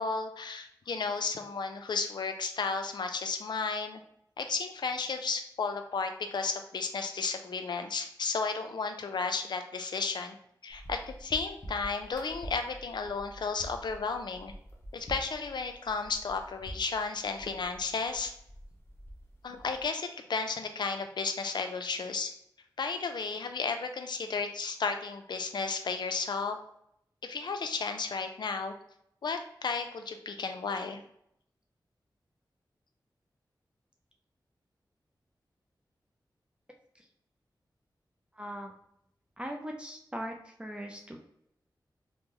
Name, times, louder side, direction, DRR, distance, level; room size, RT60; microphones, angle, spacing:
voice 1, 0.0-4.0 4.4-10.4 10.6-14.5 14.9-18.3 19.4-22.3 22.8-26.6 27.2-28.7 29.2-31.0, left 4 dB, 70° left, 6 dB, 0.4 m, -33 dB
sound 1, 10.7-19.9, equal, 30° left, 0.7 m, -47 dB
voice 2, 38.4-38.7 39.4-40.3 40.6-41.2, equal, 10° right, 1 dB, 0.4 m, -39 dB
3.0 x 2.0 x 3.5 m, 0.74 s
wide cardioid pair, 80°, 8 cm